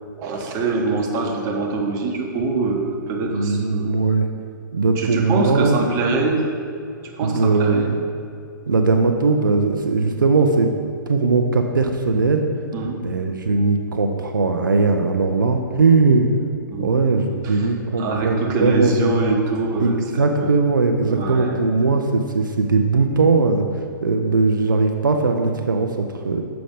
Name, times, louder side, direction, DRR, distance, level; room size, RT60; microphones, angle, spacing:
voice 1, 0.2-3.9 5.0-6.4 7.0-7.9 12.7-13.0 16.7-16.9 17.3-17.7 18.0-20.5 21.1-21.6, right 3 dB, 25° right, 1 dB, 0.9 m, -24 dB
voice 2, 3.3-4.3 4.7-5.8 7.2-8.0 8.7-10.7 11.1-12.4 13.0-16.3 16.8-19.2 19.8-26.4, right 3 dB, 75° right, 4 dB, 0.6 m, -19 dB
6.9 x 5.0 x 5.0 m, 2.5 s
figure-of-eight pair, 120°, 11 cm